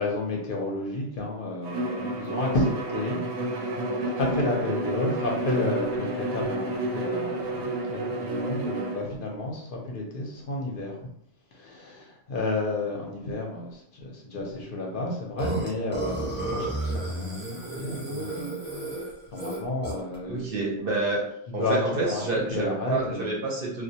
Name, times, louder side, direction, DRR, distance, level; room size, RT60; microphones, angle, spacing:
voice 1, 0.0-11.0 11.5-18.6 19.3-20.5 21.5-22.2 22.5-23.3, left 2 dB, 60° left, -1 dB, 0.6 m, -31 dB
Bowed string instrument, 1.6-9.1, right 2 dB, 85° right, 0.9 m, -30 dB
Burping eructation, 15.4-20.2, right 2 dB, 10° right, 0.9 m, -32 dB
voice 2, 20.2-21.2 21.5-23.8, right 2 dB, 60° right, -3 dB, 0.7 m, -28 dB
2.2 x 2.1 x 2.7 m, 0.73 s
omnidirectional pair, 1.3 m